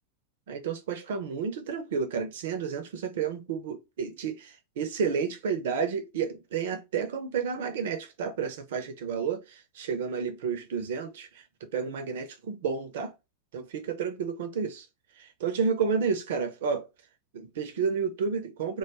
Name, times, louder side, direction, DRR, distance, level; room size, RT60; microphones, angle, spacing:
voice 1, 0.5-13.1 13.5-14.9 15.2-16.9 17.3-18.8, right 6 dB, 55° right, 0.6 m, -31 dB
2.3 x 2.2 x 3.1 m
figure-of-eight pair, 90°, 0 cm